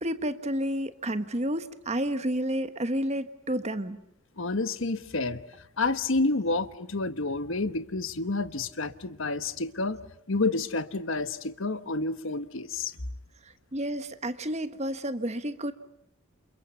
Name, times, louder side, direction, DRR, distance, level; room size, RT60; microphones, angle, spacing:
voice 1, 0.0-4.0 13.7-15.7, right 1 dB, 30° right, 1.3 m, -30 dB
voice 2, 4.4-5.4 5.8-10.0 10.3-13.0, left 3 dB, 60° left, 1.2 m, -29 dB
29.5 x 28.0 x 7.0 m
head